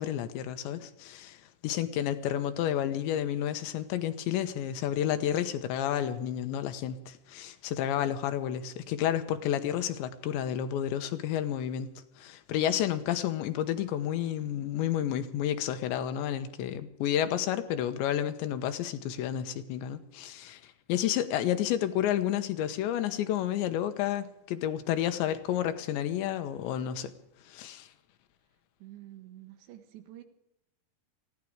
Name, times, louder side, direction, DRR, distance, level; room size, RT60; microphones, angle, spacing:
voice 1, 0.0-1.4 1.6-11.9 12.2-27.1 27.5-27.9, left 11 dB, 85° left, 9 dB, 3.4 m, -31 dB
voice 2, 28.8-30.2, right 14 dB, 80° right, 8 dB, 3.7 m, -48 dB
19.0 x 15.5 x 4.9 m, 0.84 s
omnidirectional pair, 5.1 m